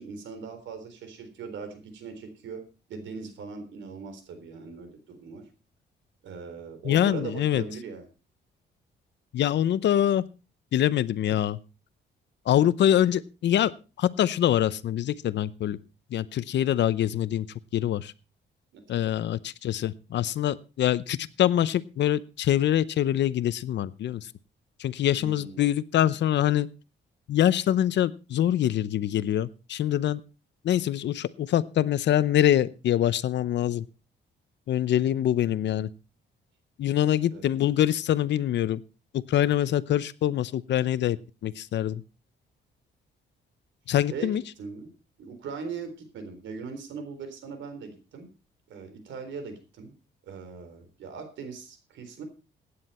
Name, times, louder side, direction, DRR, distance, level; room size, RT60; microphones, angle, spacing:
voice 1, 0.0-5.4 6.2-8.1 18.7-19.0 25.1-25.7 37.3-37.4 44.1-44.9 45.2-48.3 48.7-49.9 50.2-52.2, right 5 dB, 80° right, 9 dB, 3.8 m, -40 dB
voice 2, 6.8-7.6 9.3-10.2 10.7-11.6 12.5-13.7 14.0-15.8 16.1-17.5 17.7-18.1 18.9-24.2 24.8-26.7 27.3-30.2 30.6-33.8 34.7-35.9 36.8-38.8 39.3-41.2 41.4-42.0 43.9-44.4, left 11 dB, 70° left, 17 dB, 0.8 m, -24 dB
16.0 x 9.7 x 4.3 m, 0.32 s
cardioid pair, 115°, 19 cm